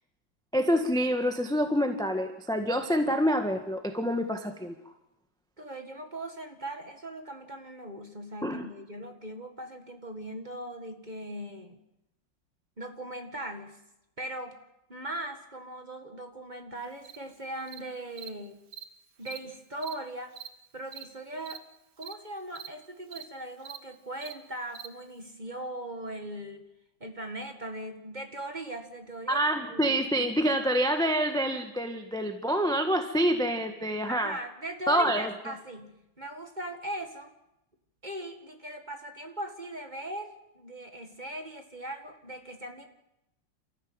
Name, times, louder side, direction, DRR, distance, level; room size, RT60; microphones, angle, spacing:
voice 1, 0.5-4.8 8.4-8.7 29.3-34.3 34.9-35.3, equal, ahead, 6 dB, 1.3 m, -27 dB
voice 2, 5.6-11.8 12.8-13.8 14.2-14.6 14.9-18.6 19.2-20.3 20.7-21.6 22.0-26.6 27.0-29.4 29.7-30.0 34.1-37.3 38.0-42.9, right 1 dB, 25° right, 5 dB, 2.0 m, -39 dB
Cricket, 17.0-17.2 17.7-17.8 18.2-18.3 18.7-18.8 19.2-19.4 19.8-19.9 20.3-20.5 20.9-21.0 21.4-21.6 22.0-22.1 22.5-22.7 23.1-23.2 23.6-23.8 24.2-24.3 24.7-24.9, right 10 dB, 65° right, 1.8 m, -42 dB
29.0 x 14.0 x 8.8 m, 0.89 s
omnidirectional pair, 2.0 m